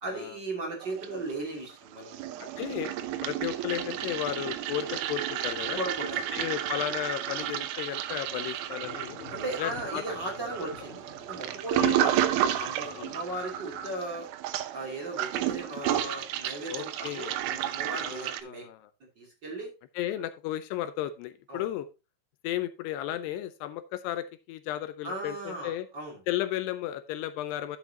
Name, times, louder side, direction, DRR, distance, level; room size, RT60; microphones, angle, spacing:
voice 1, 0.0-2.3 5.7-6.3 9.3-12.2 12.6-14.3 14.7-18.7 19.2-19.7 21.5-21.7 25.0-26.2, right 2 dB, 30° right, -1 dB, 2.9 m, -37 dB
Toilet flush, 0.8-1.7 1.9-18.4, right 12 dB, 75° right, 2.3 m, -32 dB
voice 2, 2.4-2.9 3.2-5.8 6.3-9.2 9.6-10.0 11.7-12.0 13.0-13.2 16.7-17.4 18.0-18.8 20.0-21.9 22.4-25.9 26.3-27.8, left 12 dB, 80° left, 12 dB, 2.7 m, -34 dB
sound 1, 8.8-13.9, left 6 dB, 60° left, 3.0 m, -50 dB
10.5 x 8.1 x 2.8 m, 0.27 s
omnidirectional pair, 4.9 m